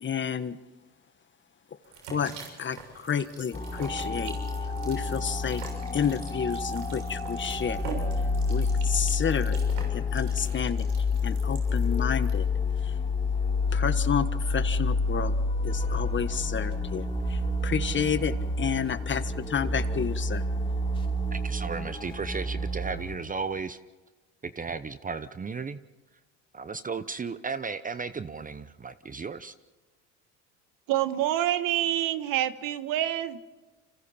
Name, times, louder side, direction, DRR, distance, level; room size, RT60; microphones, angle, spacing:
voice 1, 0.0-0.6 2.1-2.3 2.6-4.4 4.8-5.6 5.9-7.8 8.5-9.6 9.9-10.9 11.2-12.5 12.8-12.9 13.7-15.3 15.6-20.4, left 7 dB, 35° left, 12 dB, 1.4 m, -30 dB
sound 1, 1.8-12.3, right 5 dB, 85° right, 7.0 m, -45 dB
sound 2, 3.5-23.2, left 3 dB, 15° left, 3.1 m, -29 dB
voice 2, 21.3-23.8 24.4-25.8 26.5-29.5, right 5 dB, 25° right, 12 dB, 0.9 m, -35 dB
voice 3, 30.9-33.4, right 13 dB, 70° right, 12 dB, 1.4 m, -27 dB
29.0 x 26.5 x 4.4 m, 1.2 s
supercardioid pair, 80°, 35 cm